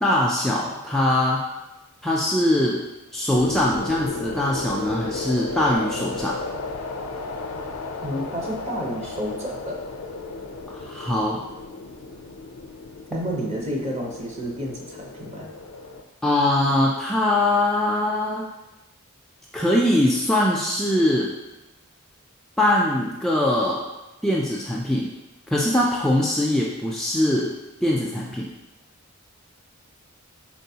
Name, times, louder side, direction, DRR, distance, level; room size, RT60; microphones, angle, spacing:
voice 1, 0.0-1.4 2.0-2.8 3.1-6.4 10.7-11.4 16.2-18.5 19.5-21.3 22.6-23.8 24.2-25.1 25.5-27.5 27.8-28.5, left 1 dB, ahead, -4 dB, 0.3 m, -22 dB
sound 1, 3.3-16.0, left 3 dB, 85° left, 0.5 m, -34 dB
voice 2, 8.0-9.9 13.1-15.5, equal, 30° right, -1 dB, 0.8 m, -30 dB
4.5 x 4.0 x 2.8 m, 1.0 s
head